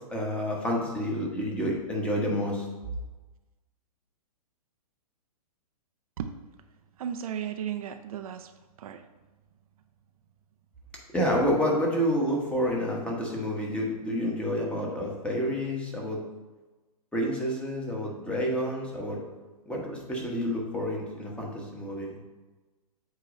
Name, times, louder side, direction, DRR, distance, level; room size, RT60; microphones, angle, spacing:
voice 1, 0.1-2.7 11.1-16.2 17.1-19.2 19.6-22.2, equal, 5° left, -2 dB, 1.2 m, -29 dB
voice 2, 7.0-8.5 8.8-9.0, right 9 dB, 65° right, 7 dB, 0.6 m, -34 dB
8.1 x 3.0 x 5.1 m, 1.2 s
hypercardioid pair, 140°, 19 cm